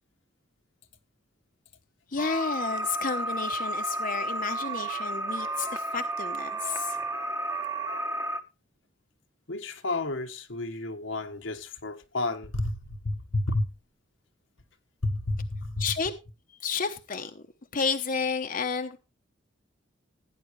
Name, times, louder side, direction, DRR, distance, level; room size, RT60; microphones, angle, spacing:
voice 1, 2.1-7.0 15.8-16.1 16.6-17.4 17.7-19.0, left 5 dB, 45° left, 1.0 m, -31 dB
sound 1, 2.2-8.4, right 2 dB, 15° right, 1.2 m, -32 dB
voice 2, 9.5-13.7 15.0-15.8, left 2 dB, 80° left, 1.5 m, -31 dB
16.5 x 9.4 x 3.2 m
head